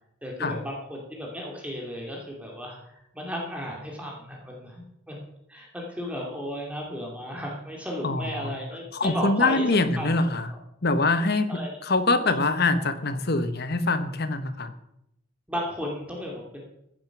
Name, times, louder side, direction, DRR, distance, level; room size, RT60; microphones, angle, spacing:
voice 1, 0.2-5.2 5.5-9.7 10.0-10.1 11.5-11.7 12.2-12.3 15.5-16.6, equal, 5° right, -1 dB, 2.6 m, -34 dB
voice 2, 8.0-8.6 8.9-10.5 10.8-14.7, left 3 dB, 50° left, 10 dB, 1.1 m, -24 dB
15.5 x 9.0 x 5.9 m, 0.80 s
head